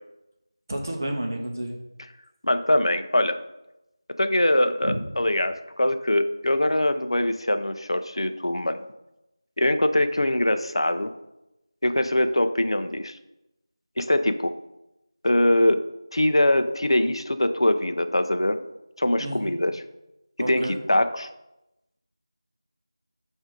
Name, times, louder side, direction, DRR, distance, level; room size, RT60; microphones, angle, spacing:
voice 1, 0.7-1.8 4.8-5.0 19.2-19.6 20.4-20.8, right 1 dB, 35° right, 1 dB, 0.8 m, -30 dB
voice 2, 2.4-3.4 4.2-8.8 9.6-11.1 11.8-13.2 14.0-14.5 15.2-15.9 16.1-18.6 19.0-19.7 20.5-21.3, left 1 dB, 75° left, 9 dB, 0.5 m, -22 dB
7.1 x 2.7 x 5.0 m, 0.92 s
figure-of-eight pair, 175°, 3 cm